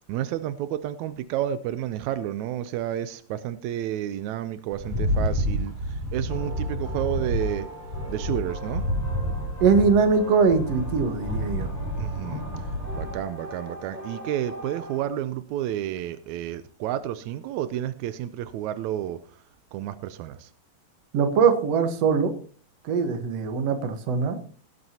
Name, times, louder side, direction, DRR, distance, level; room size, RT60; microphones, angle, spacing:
voice 1, 0.1-7.7 8.1-8.8 12.0-12.4 12.9-19.4 19.7-20.5, right 11 dB, 85° right, 1.6 m, -31 dB
Rattle, 4.7-13.2, equal, 15° right, 3.6 m, -29 dB
sound 1, 6.3-15.0, right 1 dB, 10° left, 5.2 m, -41 dB
voice 2, 9.6-11.7 21.1-22.3 22.8-24.4, right 5 dB, 60° right, 2.1 m, -22 dB
17.5 x 11.0 x 2.8 m
omnidirectional pair, 4.0 m